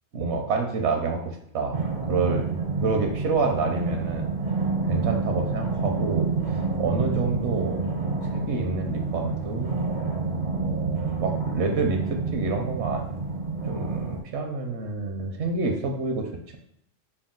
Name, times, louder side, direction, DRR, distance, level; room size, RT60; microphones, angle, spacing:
voice 1, 0.1-1.8 2.1-2.5 2.8-4.3 4.9-7.9 8.2-9.8 10.5-13.0 13.6-16.6, right 4 dB, 70° right, 3 dB, 0.9 m, -28 dB
sound 1, 1.7-14.2, right 4 dB, 50° right, 0.6 m, -28 dB
4.6 x 2.3 x 3.7 m, 0.73 s
omnidirectional pair, 1.2 m